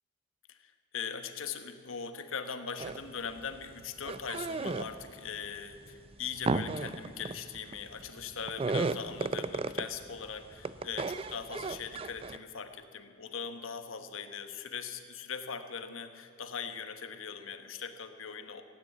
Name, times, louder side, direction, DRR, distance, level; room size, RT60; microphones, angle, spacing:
voice 1, 0.5-18.6, left 6 dB, 90° left, 8 dB, 1.2 m, -40 dB
sound 1, 2.8-3.1 3.4-5.1 5.6-10.2 10.5-12.4, right 3 dB, 30° right, 0.4 m, -34 dB
16.5 x 9.8 x 8.3 m, 2.5 s
head